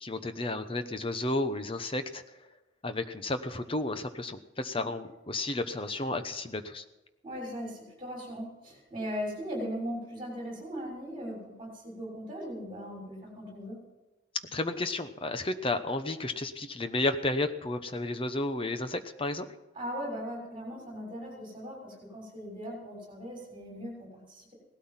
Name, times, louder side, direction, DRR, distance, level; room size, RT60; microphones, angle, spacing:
voice 1, 0.0-2.2 2.8-6.8 14.5-19.5, left 2 dB, 25° left, 9 dB, 0.9 m, -32 dB
voice 2, 7.2-13.8 19.7-24.5, equal, 25° right, 0 dB, 6.2 m, -39 dB
18.0 x 13.0 x 5.8 m, 1.1 s
head